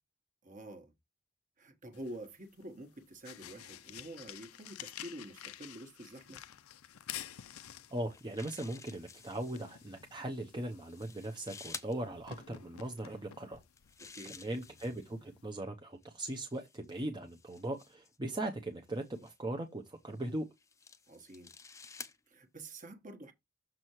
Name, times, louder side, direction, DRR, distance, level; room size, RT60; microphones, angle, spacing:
voice 1, 0.4-0.9 1.6-6.4 14.0-14.4 21.1-21.5 22.3-23.3, right 1 dB, 35° right, 1.3 m, -48 dB
sound 1, 1.9-15.5, left 11 dB, 80° left, 0.6 m, -51 dB
sound 2, 7.9-9.9 10.7-11.9 13.6-15.2 16.0-18.2 19.0-19.4 20.2-22.2, left 5 dB, 15° left, 0.5 m, -51 dB
voice 2, 7.9-13.6 14.2-20.5, right 1 dB, 20° right, 0.7 m, -39 dB
6.6 x 6.0 x 3.0 m
head